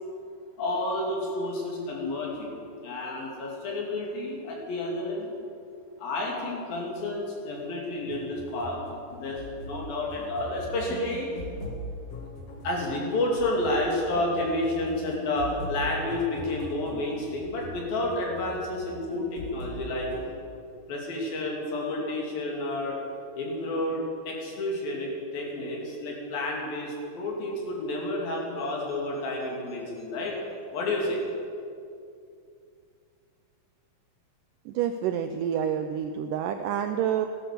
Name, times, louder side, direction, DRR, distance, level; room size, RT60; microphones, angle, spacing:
voice 1, 0.6-2.5 2.8-5.3 6.0-8.8 9.1-11.3 12.6-20.1 20.9-23.0 23.4-30.4 30.7-31.2, left 1 dB, 70° left, -2 dB, 4.4 m, -30 dB
sound 1, 8.0-20.3, left 1 dB, 45° left, 2.8 m, -41 dB
voice 2, 34.7-37.3, right 9 dB, 85° right, 7 dB, 1.9 m, -28 dB
17.0 x 11.5 x 6.7 m, 2.5 s
omnidirectional pair, 4.4 m